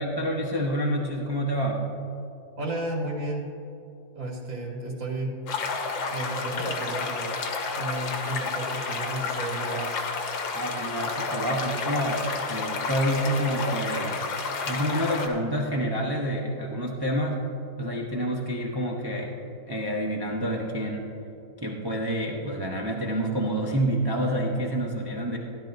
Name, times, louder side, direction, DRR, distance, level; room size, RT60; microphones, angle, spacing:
voice 1, 0.0-1.8 10.5-14.2 14.7-17.4 17.8-19.4 19.7-21.1 21.6-25.4, equal, 35° right, -2 dB, 0.3 m, -28 dB
voice 2, 2.6-3.4 4.1-5.3 6.1-7.3 7.7-9.9, right 2 dB, 85° right, -4 dB, 3.0 m, -33 dB
sound 1, 5.5-15.3, left 4 dB, 85° left, 1.8 m, -31 dB
16.5 x 11.0 x 2.6 m, 2.8 s
omnidirectional pair, 2.0 m